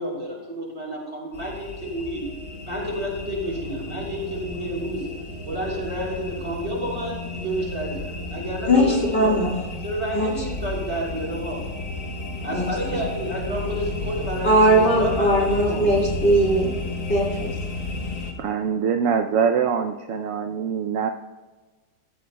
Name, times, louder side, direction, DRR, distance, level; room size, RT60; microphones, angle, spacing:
voice 1, 0.0-2.3 2.7-5.1 5.4-9.5 9.8-11.7 12.4-16.0, right 1 dB, 35° right, -2 dB, 3.3 m, -30 dB
sound 1, 1.3-18.3, left 2 dB, 65° left, 2.2 m, -33 dB
voice 2, 8.7-9.8 10.1-10.3 12.5-12.7 14.4-16.7 17.1-17.5, right 1 dB, 40° left, -2 dB, 2.5 m, -19 dB
voice 3, 18.4-21.1, right 7 dB, 70° right, 6 dB, 0.8 m, -23 dB
16.0 x 14.5 x 2.2 m, 1.3 s
omnidirectional pair, 1.9 m